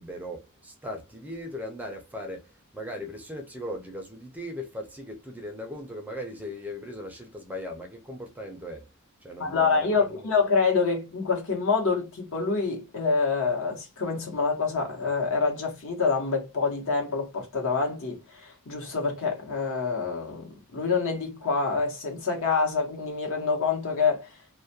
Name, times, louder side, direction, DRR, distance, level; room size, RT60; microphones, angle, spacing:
voice 1, 0.0-8.9 9.2-10.3, left 1 dB, 5° right, 0.4 m, -38 dB
voice 2, 9.4-24.3, left 4 dB, 65° left, 1.0 m, -26 dB
2.3 x 2.1 x 2.7 m
head